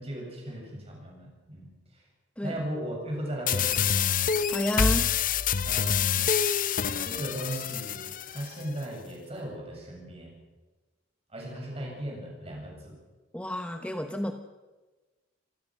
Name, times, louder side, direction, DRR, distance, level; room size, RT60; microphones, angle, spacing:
voice 1, 0.0-2.0 2.4-4.2 5.6-6.3 7.0-10.3 11.3-13.0, right 1 dB, 30° right, -1 dB, 7.6 m, -37 dB
sound 1, 3.5-8.5, left 7 dB, 45° left, 0.7 m, -26 dB
voice 2, 4.5-5.1 13.3-14.3, equal, 5° left, 6 dB, 0.9 m, -30 dB
26.5 x 17.5 x 6.3 m, 1.2 s
head